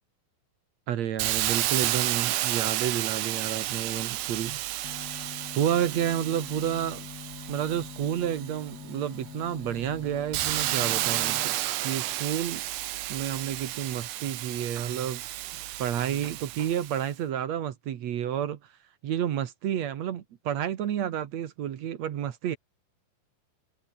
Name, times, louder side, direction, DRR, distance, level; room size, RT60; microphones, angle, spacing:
voice 1, 0.9-5.1 5.5-7.1 7.5-11.6 11.8-12.7 13.1-15.2 15.8-18.6 19.0-22.6, right 10 dB, 55° right, 2.3 m, -30 dB
Hiss, 1.2-8.8 9.3-17.0, right 15 dB, 90° right, 3.0 m, -31 dB
sound 1, 4.8-11.4, left 7 dB, 90° left, 5.1 m, -44 dB
omnidirectional pair, 4.2 m